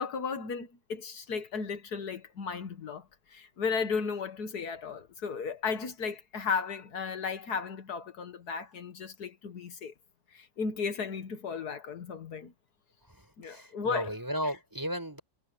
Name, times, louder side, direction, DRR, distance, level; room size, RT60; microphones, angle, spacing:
voice 1, 0.0-3.0 3.3-9.9 10.3-12.5 13.4-14.1 14.4-14.5, left 5 dB, 75° left, 1.9 m, -35 dB
voice 2, 13.4-15.2, equal, 10° right, 7.2 m, -34 dB
omnidirectional pair, 1.7 m